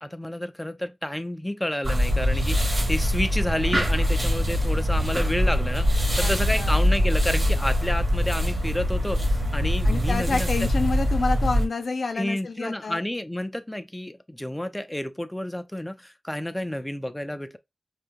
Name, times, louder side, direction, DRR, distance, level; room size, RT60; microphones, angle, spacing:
voice 1, 0.0-10.5 12.2-17.6, left 1 dB, 10° left, 0.4 m, -30 dB
sound 1, 1.8-11.7, equal, 45° right, 1.4 m, -23 dB
voice 2, 6.1-6.8 9.8-13.0, left 3 dB, 75° left, 0.5 m, -29 dB
2.8 x 2.3 x 3.3 m
wide cardioid pair, 80°, 0 cm